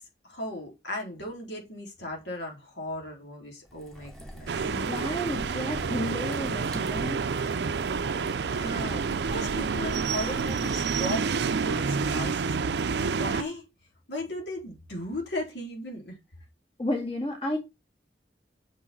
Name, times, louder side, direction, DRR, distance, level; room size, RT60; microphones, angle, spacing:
voice 1, 0.2-4.6 8.2-12.5 13.0-13.6 14.1-16.2, left 1 dB, 80° left, 4.2 m, -37 dB
sound 1, 3.6-11.2, equal, 5° left, 2.7 m, -46 dB
sound 2, 4.5-13.4, right 5 dB, 70° right, 0.5 m, -29 dB
voice 2, 4.6-7.2 16.8-17.6, left 1 dB, 35° left, 2.0 m, -32 dB
6.8 x 6.3 x 5.8 m
head